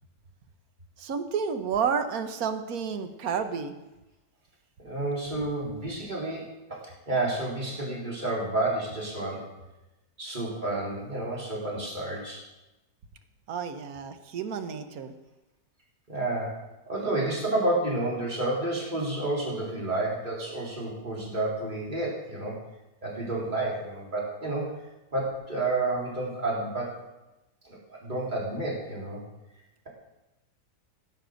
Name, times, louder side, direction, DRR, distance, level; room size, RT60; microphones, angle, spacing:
voice 1, 1.0-3.7 13.5-15.1, right 6 dB, 60° right, 8 dB, 1.6 m, -30 dB
voice 2, 4.8-9.5 10.2-12.4 16.1-16.6 16.9-22.6 23.0-24.7 25.1-26.9 27.7-29.2, right 2 dB, 25° right, -4 dB, 3.9 m, -30 dB
16.5 x 9.8 x 6.5 m, 0.99 s
omnidirectional pair, 1.8 m